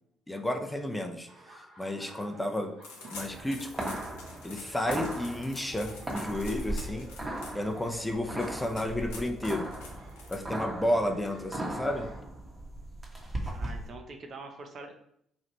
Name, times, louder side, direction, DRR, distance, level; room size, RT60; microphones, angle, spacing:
voice 1, 0.3-1.3 1.8-2.7 3.1-3.9 4.4-7.1 7.5-9.7 10.3-12.1, left 1 dB, 10° left, 4 dB, 0.5 m, -32 dB
Laughter, 1.3-12.2, right 2 dB, 70° right, 1.5 m, -54 dB
sound 1, 2.8-10.8, left 3 dB, 80° left, 0.7 m, -47 dB
sound 2, 3.1-13.9, right 1 dB, 25° right, 0.9 m, -38 dB
voice 2, 13.5-15.0, right 3 dB, 55° right, 4 dB, 0.7 m, -44 dB
3.1 x 2.4 x 4.1 m, 0.72 s
hypercardioid pair, 50°, 0 cm